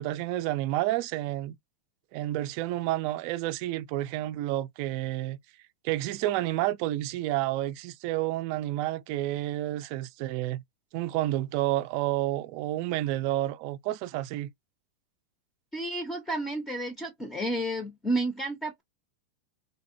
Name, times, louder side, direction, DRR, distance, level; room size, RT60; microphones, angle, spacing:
voice 1, 0.0-1.6 2.1-5.4 5.8-10.6 10.9-14.5, right 15 dB, 45° right, 0.4 m, -30 dB
voice 2, 15.7-18.8, right 1 dB, 10° left, 0.6 m, -31 dB
3.4 x 2.1 x 2.6 m
supercardioid pair, 160°, 0 cm